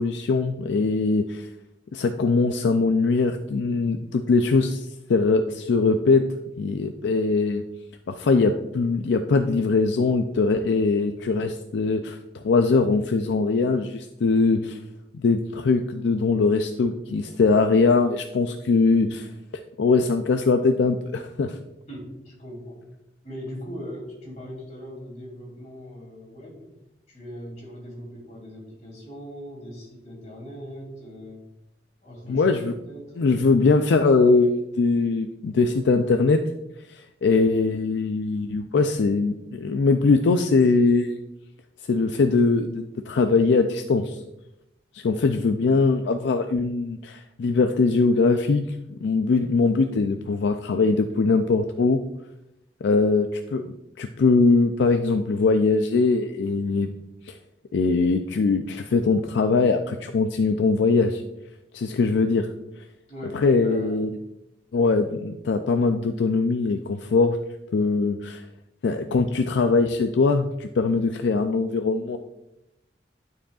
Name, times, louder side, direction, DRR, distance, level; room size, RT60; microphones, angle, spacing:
voice 1, 0.0-1.5 1.9-6.2 6.6-7.6 8.1-14.8 15.1-19.3 19.8-21.6 32.3-32.7 33.2-36.4 36.9-41.2 41.9-44.2 44.9-52.0 52.8-56.9 57.3-57.4 57.7-61.2 61.7-62.5 63.3-64.2 64.7-67.4 67.7-68.4 68.8-72.2, left 4 dB, 75° left, 6 dB, 0.4 m, -21 dB
voice 2, 21.9-22.8 23.2-26.7 27.1-31.4 32.0-32.6 32.9-33.2 63.1-64.1, equal, 40° left, -3 dB, 2.7 m, -40 dB
11.5 x 4.7 x 2.4 m, 0.88 s
head